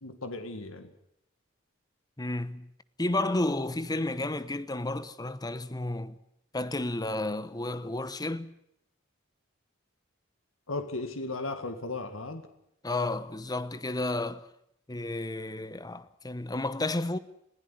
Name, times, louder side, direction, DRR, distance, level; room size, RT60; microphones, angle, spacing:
voice 1, 0.0-0.9 10.7-12.5, left 2 dB, 75° left, 2.0 m, -36 dB
voice 2, 2.2-2.7 3.0-6.1 6.5-8.5 12.8-14.4 14.9-17.2, left 2 dB, 20° left, 1.0 m, -32 dB
21.0 x 15.5 x 9.9 m
head